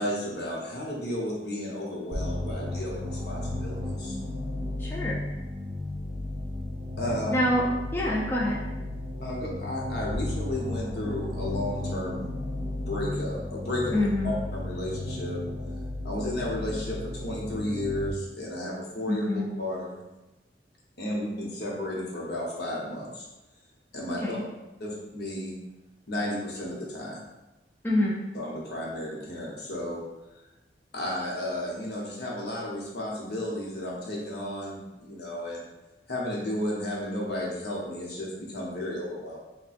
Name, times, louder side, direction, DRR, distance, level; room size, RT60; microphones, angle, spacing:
voice 1, 0.0-4.2 7.0-7.4 9.2-12.3 12.8-15.4 16.0-19.3 19.6-20.0 21.0-23.3 23.9-24.4 24.8-25.5 26.1-27.2 28.3-30.0 30.9-35.6 36.1-39.4, left 1 dB, 65° left, -4 dB, 0.8 m, -33 dB
sound 1, 2.1-18.1, left 1 dB, 75° right, 0.6 m, -34 dB
voice 2, 4.8-5.2 7.3-7.7 7.9-8.6 13.9-14.3 19.1-19.5 24.2-24.4 27.8-28.2, left 1 dB, 10° left, -4 dB, 0.3 m, -26 dB
4.0 x 2.1 x 2.4 m, 1.0 s
head